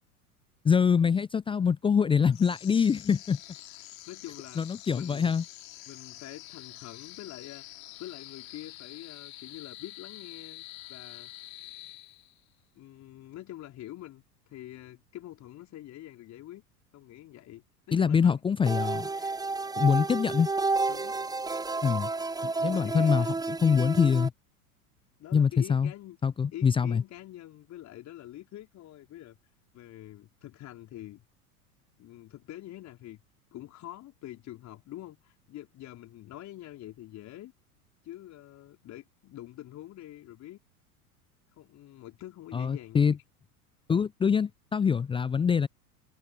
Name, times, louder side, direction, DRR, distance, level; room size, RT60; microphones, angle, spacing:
voice 1, 0.6-3.4 4.6-5.4 17.9-19.1 19.8-20.5 21.8-22.1 22.4-23.3 23.6-24.3 25.3-25.9 26.2-27.0 42.5-43.2 43.9-45.7, left 6 dB, 10° left, 0.6 m, -24 dB
sound 1, 2.3-12.5, left 16 dB, 60° left, 3.5 m, -47 dB
voice 2, 3.8-4.6 4.9-5.3 5.9-7.7 8.0-11.3 12.7-16.6 16.9-18.4 19.1-19.4 20.9-21.2 22.6-23.4 25.2-26.2 26.5-29.4 29.7-31.2 32.0-33.2 33.5-37.5 38.0-40.6 41.6-43.2, left 14 dB, 35° left, 4.6 m, -45 dB
sound 2, 18.6-24.3, right 3 dB, 10° right, 1.2 m, -31 dB
figure-of-eight pair, 85°, 45 cm